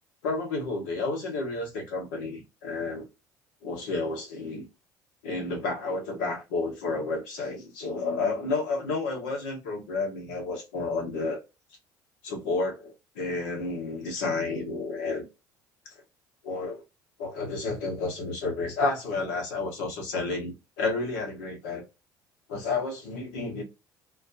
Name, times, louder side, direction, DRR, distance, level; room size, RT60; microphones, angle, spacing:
voice 1, 0.2-3.0 3.6-4.6 5.2-11.4 12.2-15.3 15.8-15.9 16.4-16.8 17.2-21.9 22.5-23.6, left 3 dB, 80° left, 1.0 m, -31 dB
2.4 x 2.1 x 2.6 m
hypercardioid pair, 65°, 10 cm